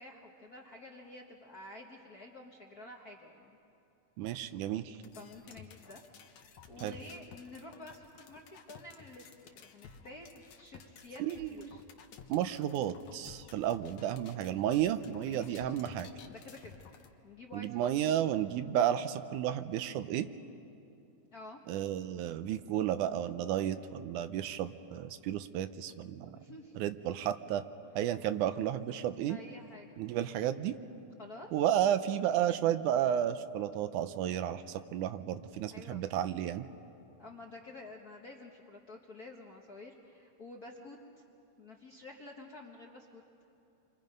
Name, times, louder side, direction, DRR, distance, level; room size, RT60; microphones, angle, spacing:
voice 1, 0.0-3.5 5.1-6.0 6.4-9.3 9.5-11.8 14.9-15.7 16.3-16.8 17.2-17.9 21.3-21.6 26.3-26.8 29.3-29.9 30.2-30.5 31.2-31.5 31.9-32.0 35.7-36.0 37.2-41.2 41.6-43.2, left 2 dB, 45° left, -1 dB, 1.2 m, -50 dB
voice 2, 4.2-5.0 6.8-6.9 11.2-11.7 12.3-16.1 17.5-20.3 21.7-26.4 26.8-27.6 28.0-29.4 30.0-30.7 31.5-36.7, right 10 dB, 80° right, 11 dB, 2.1 m, -32 dB
sound 1, 5.0-17.1, left 7 dB, 65° left, 2.3 m, -54 dB
29.0 x 24.5 x 5.3 m, 2.7 s
omnidirectional pair, 3.6 m